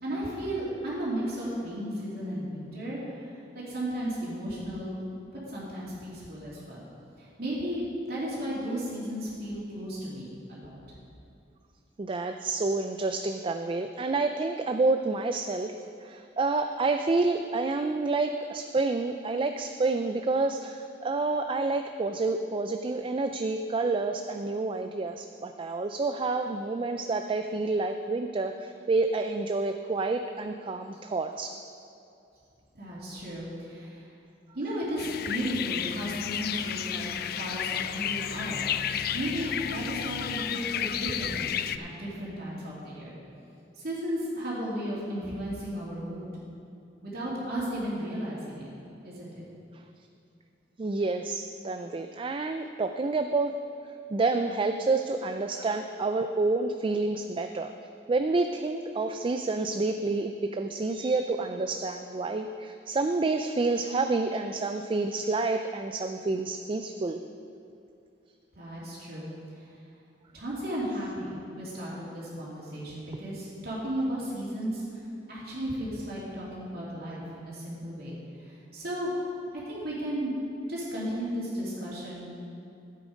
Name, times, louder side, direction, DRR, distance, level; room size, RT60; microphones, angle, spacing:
voice 1, 0.0-5.0 5.3-6.9 7.2-10.8 32.7-34.1 34.5-37.1 37.4-38.6 39.1-43.1 43.8-46.2 47.0-48.7 49.0-49.4 68.5-69.3 69.6-69.8 70.3-79.1 79.7-80.3 80.7-82.4, equal, 60° right, -7 dB, 2.8 m, -34 dB
voice 2, 12.0-15.7 16.0-31.6 50.8-53.6 54.1-57.7 58.1-67.2, right 3 dB, 30° right, 6 dB, 0.4 m, -29 dB
sound 1, 35.0-41.8, left 9 dB, 55° left, 0.4 m, -32 dB
13.0 x 8.4 x 5.1 m, 2.6 s
head